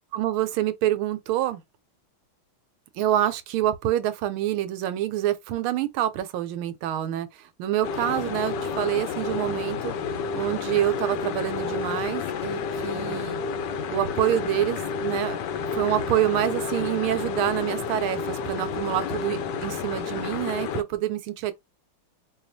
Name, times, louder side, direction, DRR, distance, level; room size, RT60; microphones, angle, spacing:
voice 1, 0.1-1.6 3.0-9.9 10.3-13.4 13.9-15.4 15.7-21.5, right 12 dB, 85° right, 1.5 m, -27 dB
sound 1, 7.8-20.8, left 5 dB, 70° left, 1.1 m, -30 dB
4.7 x 2.4 x 2.6 m
omnidirectional pair, 2.3 m